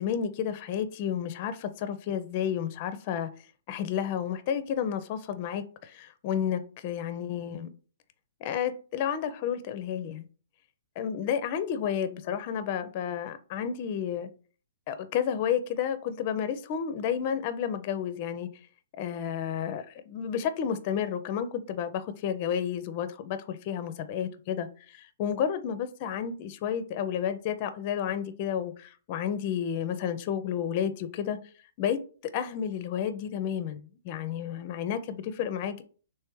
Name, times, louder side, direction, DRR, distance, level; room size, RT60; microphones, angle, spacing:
voice 1, 0.0-3.3 3.7-7.7 8.4-10.2 11.0-14.3 14.9-18.5 19.0-31.4 31.8-32.0 32.3-35.8, left 8 dB, 40° left, 0.5 m, -31 dB
3.4 x 3.1 x 4.6 m
hypercardioid pair, 140°, 0 cm